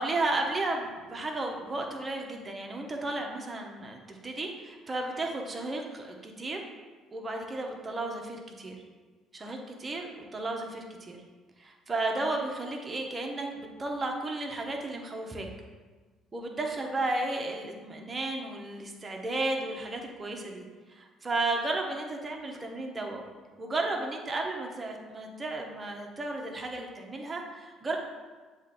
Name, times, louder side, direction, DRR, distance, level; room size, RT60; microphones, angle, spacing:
voice 1, 0.0-6.7 7.1-8.8 9.3-11.2 11.6-15.5 16.3-23.2 23.6-28.0, right 2 dB, 30° right, 1 dB, 1.1 m, -33 dB
7.4 x 3.2 x 4.3 m, 1.4 s
supercardioid pair, 75°, 0 cm